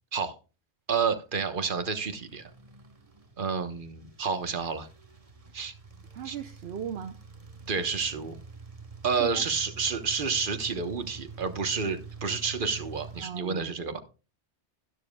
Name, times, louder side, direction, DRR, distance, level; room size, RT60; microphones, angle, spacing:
voice 1, 0.9-2.5 3.4-4.9 5.5-5.7 6.2-6.4 7.7-8.3 9.0-14.0, right 5 dB, 50° right, 9 dB, 1.3 m, -30 dB
sound 1, 1.3-13.2, right 4 dB, 35° right, 1.2 m, -47 dB
voice 2, 6.1-7.2 9.1-9.4 13.2-13.7, right 9 dB, 65° right, 9 dB, 0.9 m, -37 dB
13.0 x 12.0 x 2.3 m, 0.32 s
omnidirectional pair, 1.1 m